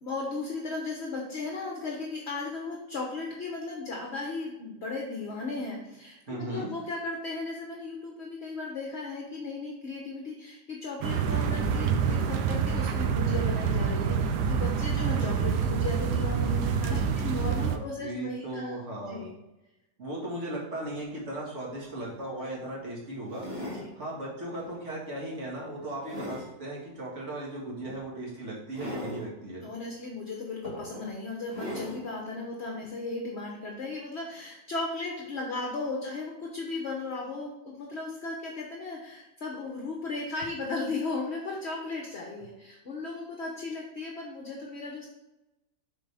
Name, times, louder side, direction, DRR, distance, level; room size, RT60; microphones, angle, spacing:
voice 1, 0.0-18.8 19.1-19.3 23.7-23.9 29.6-45.1, left 3 dB, 45° left, -1 dB, 1.1 m, -36 dB
voice 2, 6.3-6.7 17.0-19.3 20.0-29.7, right 1 dB, 45° right, -5 dB, 2.1 m, -37 dB
sound 1, 11.0-17.8, right 6 dB, 90° right, 1.2 m, -27 dB
sound 2, 22.0-22.2 23.3-23.9 24.5-24.8 25.3-26.5 27.8-28.0 28.7-29.2 30.1-30.2 30.6-31.1 31.5-32.0 32.8-32.9, equal, 20° right, 2.6 m, -39 dB
7.7 x 4.4 x 3.4 m, 0.95 s
omnidirectional pair, 1.7 m